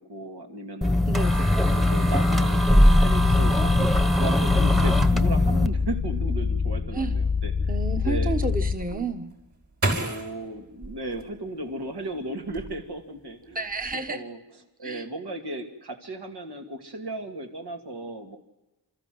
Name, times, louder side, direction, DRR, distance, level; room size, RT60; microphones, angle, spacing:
voice 1, 0.1-1.0 1.7-7.5 8.0-8.3 9.9-13.7 14.1-14.4 14.8-18.4, right 2 dB, 75° right, 3 dB, 2.7 m, -35 dB
sound 1, 0.8-5.7, left 1 dB, ahead, 1.2 m, -20 dB
voice 2, 1.1-1.6 6.9-7.1 7.7-9.3 13.5-14.2 14.8-15.0, right 3 dB, 20° right, 6 dB, 1.3 m, -31 dB
sound 2, 2.9-8.8, left 5 dB, 30° left, 0.8 m, -26 dB
sound 3, 8.8-11.9 12.4-13.2 13.5-13.9, right 2 dB, 45° right, 5.7 m, -32 dB
28.0 x 14.0 x 7.9 m, 1.0 s
wide cardioid pair, 100°, 41 cm